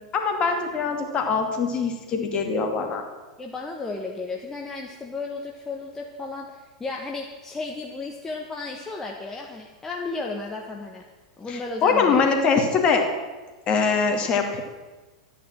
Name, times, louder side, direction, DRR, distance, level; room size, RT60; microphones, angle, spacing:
voice 1, 0.1-3.1 11.5-13.0 13.7-14.6, left 5 dB, 35° left, 4 dB, 2.4 m, -23 dB
voice 2, 3.4-11.1 11.4-12.3, left 3 dB, 15° left, 0 dB, 1.4 m, -34 dB
12.5 x 9.9 x 7.6 m, 1.3 s
figure-of-eight pair, 90°, 3 cm